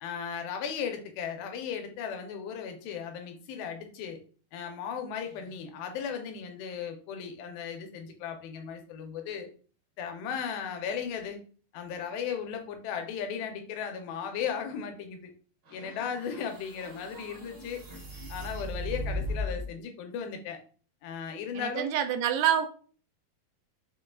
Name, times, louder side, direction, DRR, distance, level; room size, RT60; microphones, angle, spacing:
voice 1, 0.0-4.2 4.5-9.5 10.0-11.4 11.7-15.3 15.7-17.8 18.3-20.6 21.0-21.9, left 7 dB, 90° left, 5 dB, 2.6 m, -36 dB
sound 1, 15.6-19.7, left 1 dB, 65° right, 1.3 m, -37 dB
voice 2, 21.5-22.7, right 10 dB, 80° right, 8 dB, 2.3 m, -26 dB
5.9 x 2.3 x 3.7 m, 0.42 s
omnidirectional pair, 4.2 m